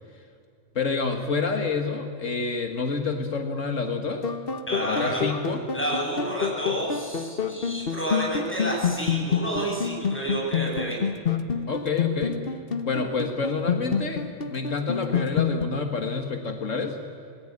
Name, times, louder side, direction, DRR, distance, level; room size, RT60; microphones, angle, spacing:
voice 1, 0.8-4.3 4.8-5.6 11.7-12.4 12.8-17.0, left 4 dB, 75° left, 5 dB, 2.0 m, -28 dB
sound 1, 4.2-15.6, left 6 dB, 45° left, 1.4 m, -28 dB
voice 2, 4.7-5.2 5.7-11.0, right 1 dB, 10° left, -3 dB, 8.1 m, -30 dB
26.5 x 20.5 x 9.9 m, 2.5 s
omnidirectional pair, 1.3 m